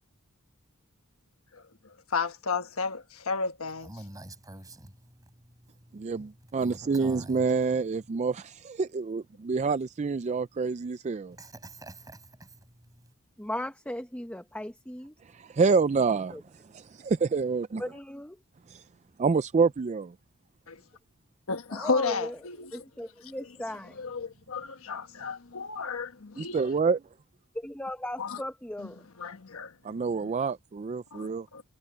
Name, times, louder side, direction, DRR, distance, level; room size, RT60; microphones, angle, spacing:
voice 1, 1.5-3.9 20.7-20.8 21.5-22.7 24.0-26.6 28.2-28.4 29.2-30.3 31.1-31.6, left 4 dB, 75° left, 1.2 m, -33 dB
voice 2, 3.8-7.5 11.3-13.1, right 1 dB, 15° right, 7.7 m, -47 dB
voice 3, 5.9-11.4 15.3-16.4 16.7-17.8 18.7-18.8 19.2-20.1 26.4-27.0 29.8-31.5, right 4 dB, 35° right, 0.4 m, -27 dB
voice 4, 13.4-15.1 16.3-16.4 17.8-18.4 21.7-22.4 22.7-24.0 27.6-29.1, left 1 dB, 5° left, 1.1 m, -37 dB
head